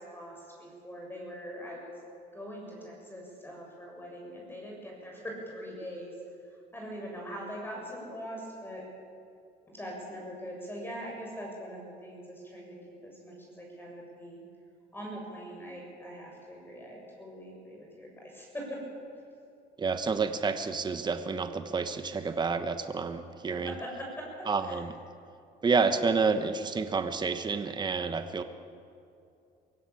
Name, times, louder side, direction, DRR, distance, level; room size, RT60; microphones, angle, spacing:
voice 1, 0.0-2.0 2.3-6.1 6.4-8.9 9.7-14.4 14.9-18.8 22.0-22.2 23.5-24.8, equal, 10° left, -1 dB, 7.2 m, -42 dB
voice 2, 19.8-23.7 24.5-24.9 25.6-28.4, right 4 dB, 25° right, 9 dB, 1.2 m, -29 dB
22.5 x 16.5 x 8.7 m, 2.5 s
cardioid pair, 110°, 17 cm